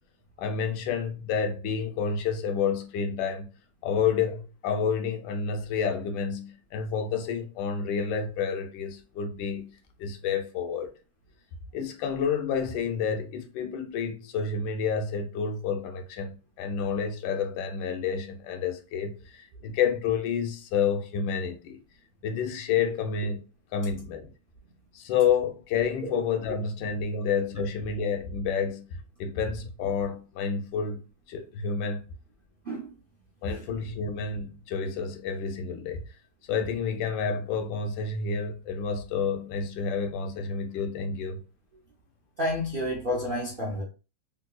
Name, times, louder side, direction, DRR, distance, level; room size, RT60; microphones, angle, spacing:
voice 1, 0.4-3.5 3.8-9.7 10.0-10.9 11.7-21.8 22.2-23.4 23.7-24.3 24.9-28.9 29.2-31.0 31.3-32.0 33.4-36.0 36.5-41.4, left 6 dB, 90° left, 1.3 m, -29 dB
voice 2, 42.4-43.8, left 1 dB, 55° right, 0.5 m, -30 dB
3.4 x 2.9 x 2.3 m
omnidirectional pair, 1.9 m